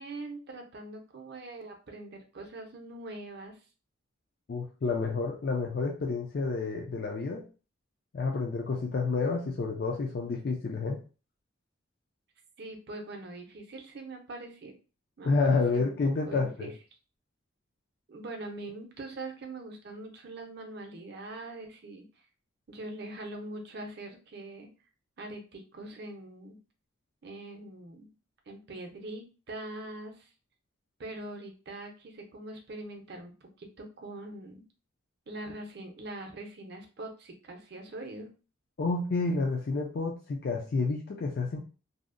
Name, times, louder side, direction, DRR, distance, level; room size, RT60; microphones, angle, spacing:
voice 1, 0.0-3.6 12.6-14.8 15.2-15.3 15.7-15.9 16.3-16.7 18.1-22.0 22.7-24.7 25.2-26.6 27.2-28.1 28.5-30.3 31.0-34.6 35.3-38.3, right 2 dB, 50° right, 2 dB, 0.5 m, -42 dB
voice 2, 4.5-7.4 8.1-11.0 15.2-16.7 38.8-41.6, left 3 dB, 50° left, 0 dB, 0.4 m, -29 dB
2.7 x 2.0 x 2.5 m, 0.35 s
head